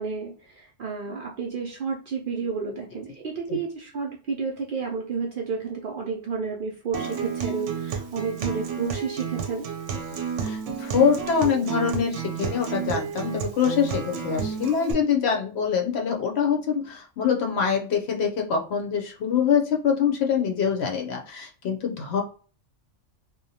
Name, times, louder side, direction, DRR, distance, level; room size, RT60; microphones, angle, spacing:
voice 1, 0.0-9.7, right 5 dB, 60° right, 0 dB, 0.6 m, -31 dB
Acoustic guitar, 6.9-14.9, right 6 dB, 85° right, 0.9 m, -31 dB
voice 2, 10.4-22.2, left 7 dB, 65° left, 1 dB, 0.9 m, -24 dB
2.7 x 2.2 x 2.7 m, 0.38 s
omnidirectional pair, 1.2 m